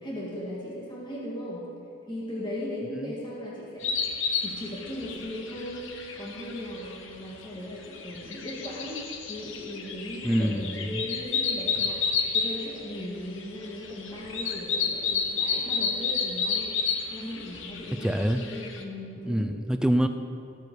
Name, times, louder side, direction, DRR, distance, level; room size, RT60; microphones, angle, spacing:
voice 1, 0.0-1.6 2.1-3.9 4.4-9.0 9.3-16.7 17.1-19.5, left 1 dB, 20° left, -6 dB, 1.8 m, -37 dB
sound 1, 3.8-18.8, left 5 dB, 65° left, 1.0 m, -31 dB
voice 2, 10.2-11.0 18.0-18.4 19.2-20.1, equal, 5° right, 7 dB, 0.4 m, -26 dB
17.5 x 6.9 x 4.7 m, 2.6 s
head